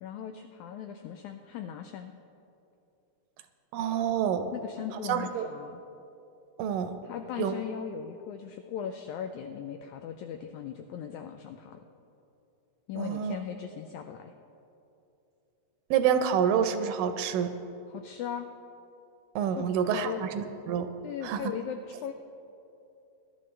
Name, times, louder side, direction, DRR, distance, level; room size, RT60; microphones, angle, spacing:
voice 1, 0.0-2.1 4.5-5.8 7.0-11.8 12.9-14.3 17.9-18.5 19.5-20.2 21.0-22.1, left 8 dB, 85° left, 6 dB, 1.7 m, -38 dB
voice 2, 3.7-4.5 5.1-5.5 6.6-7.0 7.4-7.5 13.0-13.4 15.9-17.5 19.4-20.9 21.2-21.4, right 8 dB, 80° right, 9 dB, 2.3 m, -27 dB
21.0 x 11.5 x 3.3 m, 2.8 s
omnidirectional pair, 3.9 m